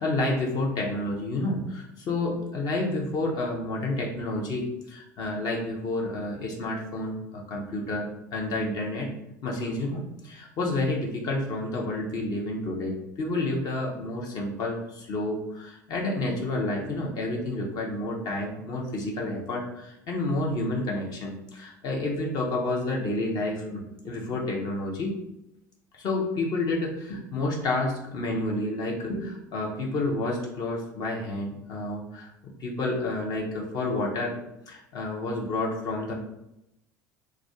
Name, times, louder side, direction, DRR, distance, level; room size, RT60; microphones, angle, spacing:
voice 1, 0.0-9.1 9.4-25.1 25.9-32.3 32.6-34.4 34.7-36.1, left 2 dB, 45° left, -1 dB, 0.6 m, -30 dB
2.4 x 2.1 x 3.5 m, 0.84 s
figure-of-eight pair, 70°, 10 cm